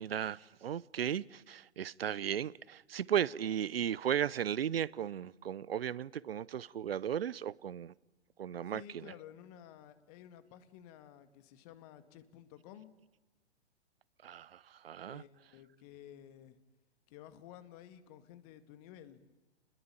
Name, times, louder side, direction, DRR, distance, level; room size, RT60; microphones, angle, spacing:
voice 1, 0.0-7.9 8.4-9.1 14.2-15.2, right 9 dB, 60° right, 0.8 m, -36 dB
voice 2, 8.7-13.0 15.1-16.6 17.1-19.2, left 10 dB, 35° left, 2.1 m, -53 dB
29.5 x 21.5 x 8.8 m
figure-of-eight pair, 115°, 33 cm